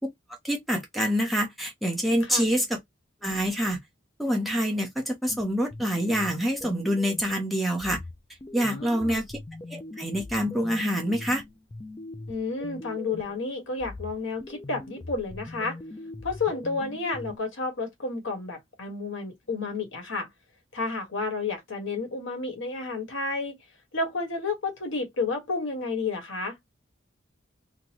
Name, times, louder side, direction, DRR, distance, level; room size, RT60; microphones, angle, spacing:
voice 1, 0.4-2.8 3.2-3.8 4.2-8.0 8.5-9.4 9.7-11.4, equal, ahead, 0.7 m, -26 dB
sound 1, 5.3-7.4 7.8-13.4 13.8-17.4, left 2 dB, 20° left, 0.3 m, -41 dB
voice 2, 8.6-9.2 12.3-15.8 16.2-20.3 20.7-23.6 23.9-26.6, left 3 dB, 75° left, 1.5 m, -31 dB
3.8 x 2.2 x 2.9 m
head